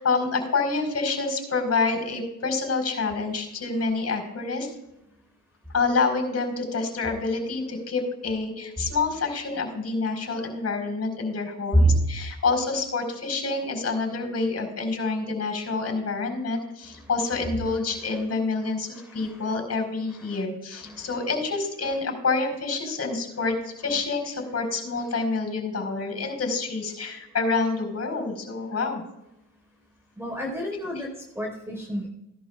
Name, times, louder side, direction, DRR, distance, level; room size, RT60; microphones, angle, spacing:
voice 1, 0.0-4.7 5.7-29.0, left 4 dB, 50° left, 5 dB, 4.7 m, -27 dB
voice 2, 18.9-19.5 20.3-20.4 20.7-21.1 30.2-32.1, right 1 dB, 10° right, -1 dB, 4.5 m, -26 dB
17.0 x 11.5 x 2.4 m, 0.88 s
cardioid pair, 65°, 32 cm